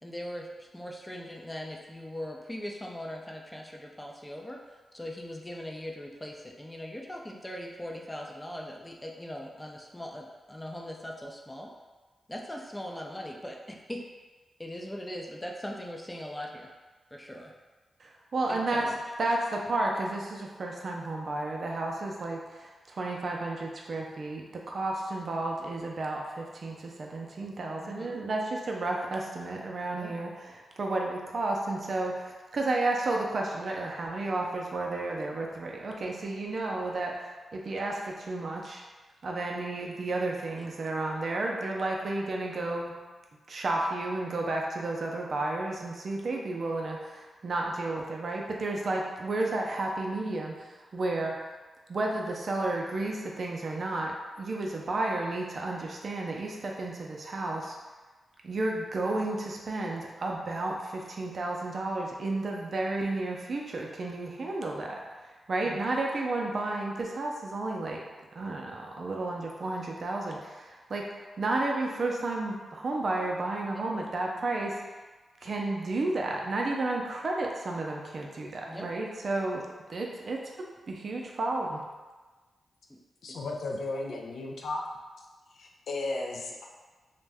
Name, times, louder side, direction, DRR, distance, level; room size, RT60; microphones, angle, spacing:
voice 1, 0.0-4.6 4.9-11.7 12.3-14.0 14.6-16.7 17.1-17.5 18.5-19.0 27.8-28.2 29.9-30.1 40.6-40.7 65.6-65.9 73.7-73.9 78.6-78.9 82.9-83.0 83.3-83.6, left 1 dB, 15° left, 0 dB, 0.5 m, -40 dB
voice 2, 18.0-18.9 19.2-37.2 37.5-38.8 39.2-42.9 43.5-51.4 51.9-57.8 58.4-68.0 68.3-71.1 71.4-74.8 75.4-80.5 80.9-81.8, right 2 dB, 60° right, 0 dB, 0.4 m, -32 dB
voice 3, 83.2-84.8 85.5-86.6, left 2 dB, 80° left, 0 dB, 0.4 m, -34 dB
2.5 x 2.1 x 3.3 m, 1.3 s
supercardioid pair, 45°, 0 cm